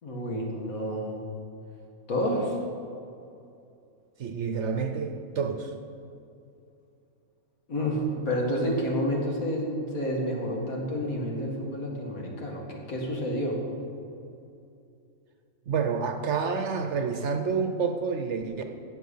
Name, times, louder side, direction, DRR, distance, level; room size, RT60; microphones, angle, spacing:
voice 1, 0.0-1.1 2.1-2.6 7.7-13.6, equal, 70° left, -1 dB, 2.4 m, -29 dB
voice 2, 4.2-5.7 15.7-18.7, right 5 dB, 60° right, 6 dB, 1.0 m, -28 dB
15.0 x 8.0 x 5.5 m, 2.6 s
omnidirectional pair, 1.5 m